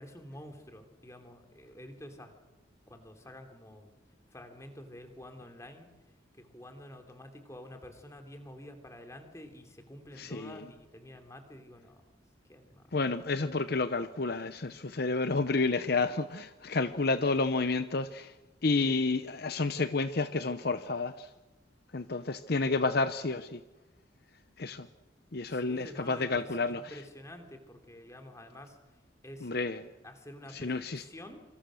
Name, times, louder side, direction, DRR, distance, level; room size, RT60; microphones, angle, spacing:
voice 1, 0.0-2.3 2.9-3.9 4.3-5.9 6.3-12.0 12.5-12.9 25.5-29.0 29.2-29.5 30.0-31.4, left 1 dB, 15° left, 3.1 m, -49 dB
voice 2, 10.2-10.6 12.9-18.3 18.6-21.3 21.9-23.6 24.6-24.9 25.3-27.0 29.4-29.9 30.5-31.0, left 3 dB, 55° left, 0.8 m, -30 dB
27.0 x 26.5 x 6.4 m
head